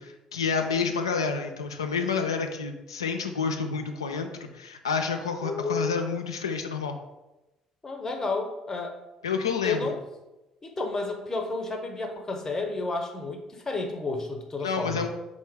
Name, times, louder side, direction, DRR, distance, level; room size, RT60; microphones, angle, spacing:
voice 1, 0.0-7.0 9.2-9.9 14.6-15.1, left 5 dB, 80° left, 5 dB, 0.3 m, -29 dB
voice 2, 5.4-5.9 7.8-8.9 9.6-10.0 10.6-15.1, left 3 dB, 20° left, 3 dB, 0.7 m, -31 dB
3.6 x 2.7 x 4.5 m, 1.0 s
figure-of-eight pair, 50°, 3 cm